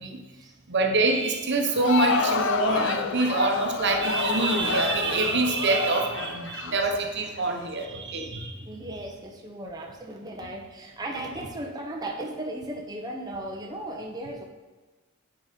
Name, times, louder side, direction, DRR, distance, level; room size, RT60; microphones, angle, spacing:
voice 1, 0.7-8.6, right 3 dB, 55° right, 4 dB, 1.0 m, -25 dB
Crowd, 1.6-7.5, left 4 dB, 65° left, 0.7 m, -28 dB
voice 2, 8.2-14.4, right 1 dB, 20° right, 0 dB, 0.8 m, -36 dB
9.3 x 5.1 x 5.2 m, 1.3 s
head